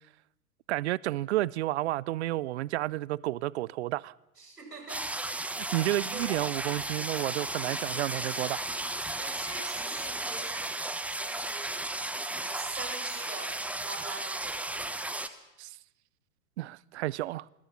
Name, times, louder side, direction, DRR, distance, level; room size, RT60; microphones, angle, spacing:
voice 1, 0.7-4.1 5.7-8.6 15.6-15.7 16.6-17.5, right 16 dB, 45° right, 0.7 m, -31 dB
voice 2, 4.4-5.2 6.1-6.3 7.9-8.1 9.2-11.8 12.1-14.9, right 4 dB, 80° right, 7.6 m, -44 dB
sound 1, 4.9-15.3, right 2 dB, 5° right, 1.1 m, -34 dB
27.0 x 21.5 x 5.9 m
figure-of-eight pair, 110°, 47 cm